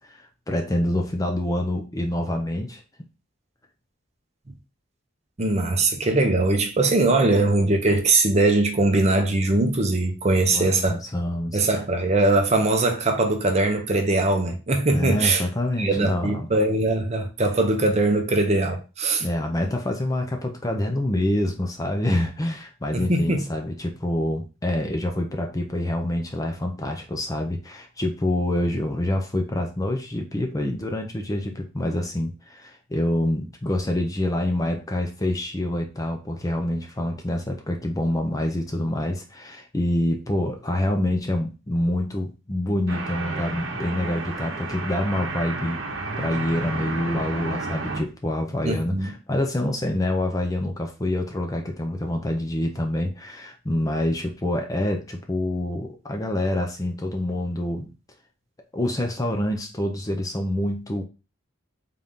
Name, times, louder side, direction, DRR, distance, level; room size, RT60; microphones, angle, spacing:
voice 1, 0.0-2.8 10.5-11.6 14.9-16.5 19.2-45.8 46.2-57.9 58.7-61.0, left 1 dB, 15° left, 0.5 m, -26 dB
voice 2, 5.4-11.0 11.5-15.4 15.8-19.2 22.9-23.4 48.6-49.1, right 2 dB, 35° right, 0.6 m, -21 dB
sound 1, 42.9-48.0, right 3 dB, 65° right, 0.9 m, -31 dB
3.8 x 2.8 x 3.5 m
head